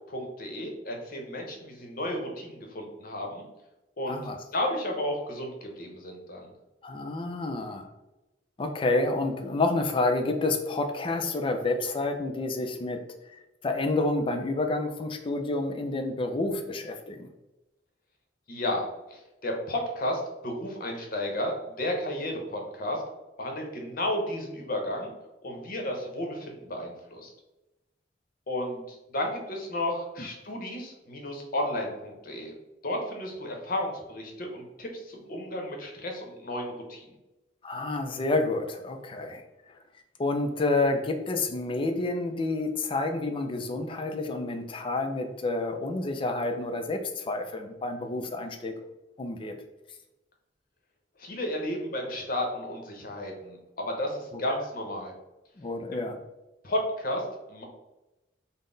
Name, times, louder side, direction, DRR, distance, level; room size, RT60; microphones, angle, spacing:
voice 1, 0.1-3.5 4.0-6.5 18.5-23.0 23.4-25.1 25.4-27.3 28.5-32.5 32.8-37.1 51.2-55.1 55.9-56.0 56.6-57.6, left 1 dB, 50° left, 2 dB, 0.7 m, -33 dB
voice 2, 4.1-4.4 6.8-7.9 8.6-13.0 13.3-17.3 37.6-39.4 40.2-48.7 49.2-49.6 55.6-56.2, left 2 dB, 30° left, 6 dB, 0.4 m, -29 dB
3.8 x 2.1 x 3.7 m, 1.0 s
head